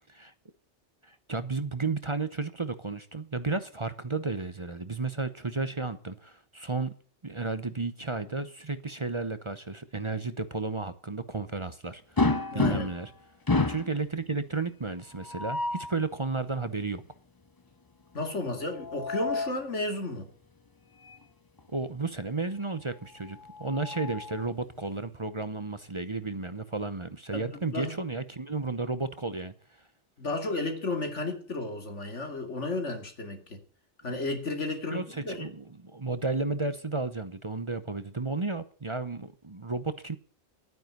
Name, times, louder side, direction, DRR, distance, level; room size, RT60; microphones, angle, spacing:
voice 1, 1.0-6.9 7.2-13.1 13.6-17.0 21.7-29.5 34.0-34.1 34.9-40.2, right 3 dB, 30° right, 0.9 m, -33 dB
sound 1, 12.2-13.1 13.5-14.0 15.2-15.9 18.6-19.6 21.0-21.2 21.6-21.7 23.2-24.5, left 3 dB, 20° left, 0.7 m, -30 dB
voice 2, 12.5-12.9 18.1-20.3 27.3-28.0 30.2-33.6 34.0-35.5, left 2 dB, 90° left, 2.9 m, -33 dB
12.0 x 9.4 x 9.5 m
omnidirectional pair, 1.2 m